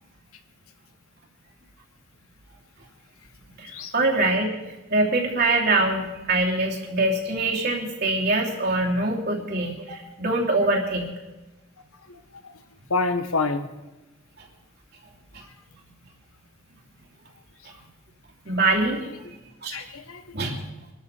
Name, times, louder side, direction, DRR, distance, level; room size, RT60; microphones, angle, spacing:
voice 1, 3.6-4.6 4.9-11.2 14.4-14.5 18.4-19.0 19.6-19.8 20.3-20.6, right 2 dB, 50° right, -2 dB, 2.9 m, -24 dB
voice 2, 12.1-12.5 12.9-13.7 19.7-20.2, left 3 dB, 90° left, 8 dB, 1.3 m, -27 dB
24.0 x 12.5 x 4.5 m, 1.0 s
head